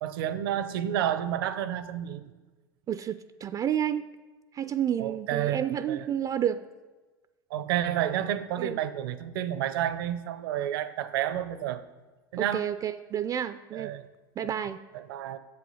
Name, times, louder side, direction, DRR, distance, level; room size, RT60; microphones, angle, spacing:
voice 1, 0.0-2.3 5.0-6.1 7.5-11.8 12.3-12.7 13.7-14.0 14.9-15.4, right 11 dB, 75° right, 14 dB, 0.7 m, -30 dB
voice 2, 2.9-4.0 4.5-6.7 8.6-8.8 12.4-13.9 14.4-14.9, right 9 dB, 30° right, 13 dB, 0.3 m, -30 dB
7.7 x 7.3 x 5.6 m, 1.3 s
hypercardioid pair, 95°, 12 cm